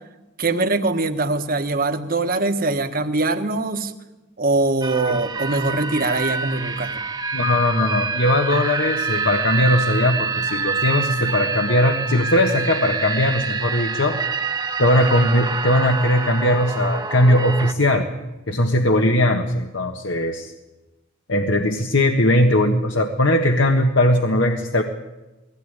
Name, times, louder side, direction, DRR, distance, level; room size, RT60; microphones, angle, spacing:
voice 1, 0.4-3.9 4.4-7.0, right 2 dB, 45° right, 8 dB, 1.5 m, -22 dB
sound 1, 4.8-17.7, right 4 dB, 20° right, 1.0 m, -26 dB
voice 2, 7.3-14.2 14.8-18.1 18.5-20.5 21.3-24.8, left 1 dB, 70° left, 4 dB, 1.5 m, -19 dB
21.0 x 16.5 x 9.7 m, 1.1 s
head